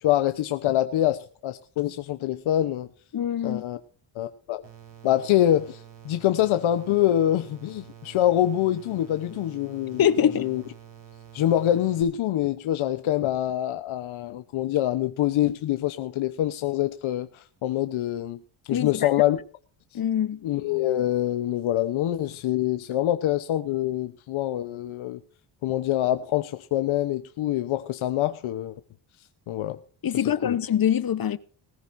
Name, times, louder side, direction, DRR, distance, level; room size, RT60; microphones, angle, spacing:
voice 1, 0.0-2.9 3.4-3.8 4.1-4.6 5.0-10.6 11.3-18.4 18.7-19.4 19.9-20.0 20.4-25.2 25.6-28.8 29.5-29.8 30.1-30.6, left 12 dB, 80° left, 1.0 m, -25 dB
voice 2, 3.1-3.6 10.0-10.5 18.7-19.1 19.9-20.4 30.0-31.4, left 9 dB, 45° left, 1.0 m, -24 dB
sound 1, 4.6-12.0, right 10 dB, 65° right, 4.9 m, -48 dB
20.0 x 14.0 x 2.7 m
cardioid pair, 90°, 47 cm